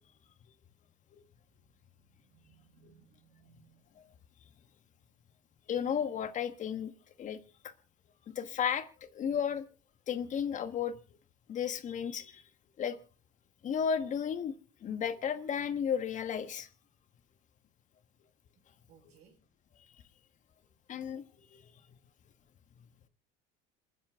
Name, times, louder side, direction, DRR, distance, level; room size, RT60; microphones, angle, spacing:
voice 1, 2.2-3.8 18.9-19.4, right 8 dB, 55° right, 5.2 m, -63 dB
voice 2, 5.7-6.9 7.2-7.4 7.6-7.7 8.3-8.9 9.1-9.6 10.1-10.9 11.5-12.4 12.8-13.0 13.6-14.5 14.8-16.7 20.9-21.2 21.5-21.6, left 8 dB, 40° left, 1.5 m, -33 dB
27.5 x 10.0 x 3.6 m
cardioid pair, 135°, 20 cm